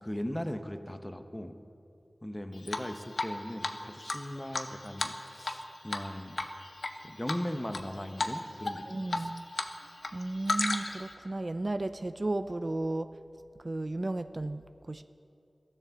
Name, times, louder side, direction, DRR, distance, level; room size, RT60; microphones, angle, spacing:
voice 1, 0.0-1.5 2.2-6.4 7.0-9.3, equal, 15° left, 7 dB, 1.0 m, -38 dB
Drip, 2.7-3.3 3.6-3.7 4.1-5.6 5.9-6.1 6.4-6.9 7.3-7.8 8.2-8.4 8.6-9.7 10.0-11.1, left 2 dB, 70° left, 0.9 m, -33 dB
voice 2, 8.9-9.4 10.1-13.1 13.6-15.0, right 2 dB, 40° right, 10 dB, 0.4 m, -34 dB
14.5 x 11.0 x 7.1 m, 2.6 s
wide cardioid pair, 60°, 0 cm